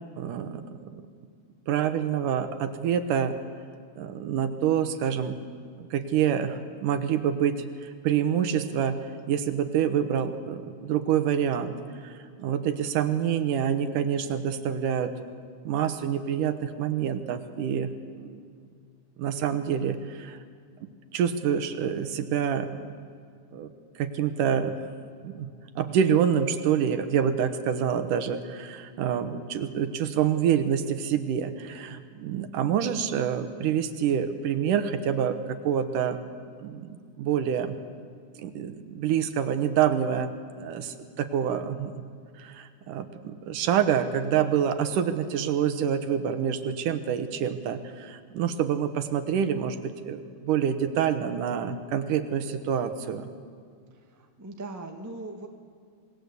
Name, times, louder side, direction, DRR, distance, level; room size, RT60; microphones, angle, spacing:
voice 1, 0.2-1.0 1.7-3.4 4.0-5.4 5.8-11.7 12.0-15.1 15.6-17.9 18.2-18.4 19.2-20.4 21.1-22.8 23.5-23.7 24.0-24.8 25.2-25.5 25.8-36.2 36.6-37.8 38.4-40.3 40.6-41.9 42.4-53.3, right 8 dB, 70° right, 10 dB, 2.5 m, -27 dB
voice 2, 53.9-55.5, right 2 dB, 20° right, 3 dB, 0.4 m, -40 dB
26.5 x 20.5 x 8.2 m, 2.2 s
omnidirectional pair, 4.2 m